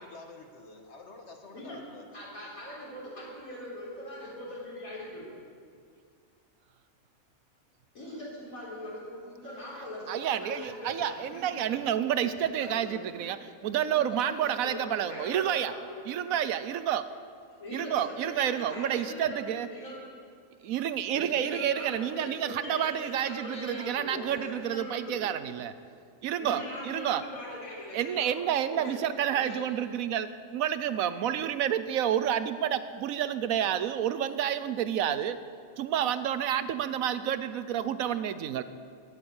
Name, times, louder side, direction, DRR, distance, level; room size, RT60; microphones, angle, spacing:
voice 1, 0.0-2.1, left 3 dB, 55° left, 4 dB, 1.6 m, -48 dB
voice 2, 2.1-5.3 7.9-13.3 13.8-16.1 17.6-20.0 21.1-25.3 26.4-28.3 28.7-29.0 29.3-29.6, left 1 dB, 80° left, -7 dB, 4.2 m, -41 dB
voice 3, 10.1-15.7 16.0-17.0 17.7-19.7 20.6-25.7 26.2-27.2 27.9-35.4 35.8-38.6, right 10 dB, 80° right, 13 dB, 1.1 m, -29 dB
17.5 x 8.7 x 7.1 m, 2.2 s
omnidirectional pair, 1.4 m